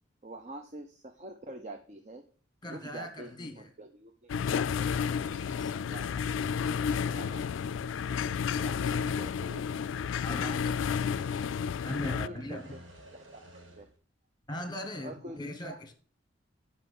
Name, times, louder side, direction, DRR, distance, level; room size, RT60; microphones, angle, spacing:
voice 1, 0.2-2.2 2.7-4.3 4.8-4.9 5.9-6.2 7.1-9.7 10.3-10.7 12.0-12.6 13.3-13.9 15.0-15.8, right 1 dB, 35° right, 0.6 m, -46 dB
voice 2, 2.6-3.7 5.4-5.8 10.2-10.5 11.8-12.8 14.5-15.9, left 1 dB, 20° left, 1.2 m, -39 dB
sound 1, 4.3-12.3, left 7 dB, 80° left, 0.3 m, -31 dB
sound 2, 4.5-6.2 6.5-7.7 8.2-9.6 9.9-10.0 10.5-11.8 12.1-13.9, right 1 dB, 85° right, 1.9 m, -53 dB
7.4 x 5.7 x 6.4 m
head